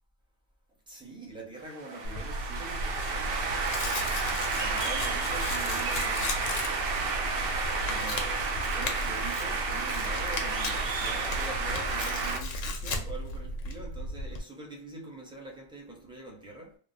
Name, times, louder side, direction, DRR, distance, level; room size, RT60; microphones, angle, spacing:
voice 1, 0.9-6.6 7.9-16.8, right 2 dB, 5° right, 0.5 m, -44 dB
sound 1, 1.7-12.4, right 4 dB, 60° right, 0.7 m, -31 dB
Tearing, 2.0-14.4, left 1 dB, 80° left, 0.9 m, -35 dB
3.0 x 2.1 x 2.6 m
omnidirectional pair, 1.3 m